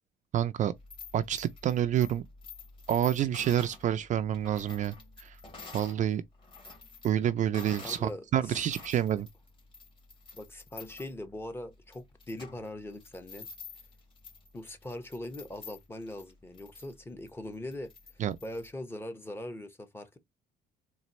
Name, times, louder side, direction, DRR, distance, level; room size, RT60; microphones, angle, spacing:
voice 1, 0.3-0.7 1.1-2.2 2.9-5.4 5.7-6.2 7.0-9.3 18.2-18.4, right 10 dB, 45° right, 0.4 m, -28 dB
sound 1, 0.8-6.0 6.3-8.1 8.5-18.7, left 4 dB, 30° left, 2.4 m, -49 dB
voice 2, 7.8-9.0 10.4-13.5 14.5-17.9 18.4-20.2, left 1 dB, 15° left, 0.9 m, -41 dB
4.1 x 2.5 x 3.0 m
cardioid pair, 110°, 17 cm